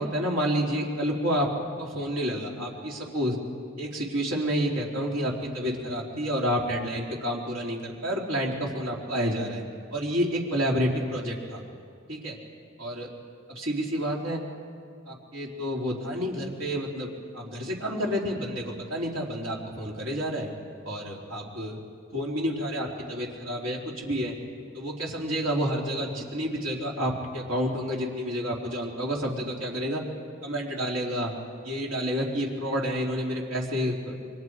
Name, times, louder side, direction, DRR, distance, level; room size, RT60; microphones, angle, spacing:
voice 1, 0.0-1.5 1.8-3.4 3.8-9.6 9.9-11.6 12.1-12.4 12.8-13.1 13.5-14.4 15.1-17.1 17.3-20.5 20.8-21.8 22.1-24.3 24.7-30.0 30.4-31.3 31.6-34.2, equal, 70° right, -2 dB, 3.7 m, -29 dB
29.0 x 24.5 x 4.8 m, 2.2 s
head